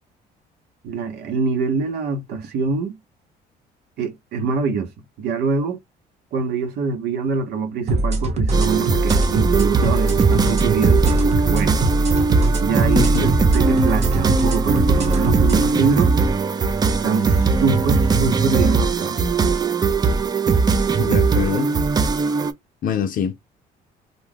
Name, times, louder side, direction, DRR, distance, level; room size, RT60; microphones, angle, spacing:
voice 1, 0.8-2.9 4.0-4.9 5.2-5.8 6.3-11.8 12.6-16.1 17.0-19.3, right 5 dB, 75° right, 0.9 m, -24 dB
sound 1, 7.9-15.6, right 2 dB, 40° right, 0.9 m, -21 dB
sound 2, 8.5-22.5, right 4 dB, 25° right, 0.4 m, -19 dB
voice 2, 12.9-13.4 21.0-21.8 22.8-23.3, left 8 dB, 55° left, 0.5 m, -24 dB
2.5 x 2.3 x 3.3 m
cardioid pair, 110°, 17 cm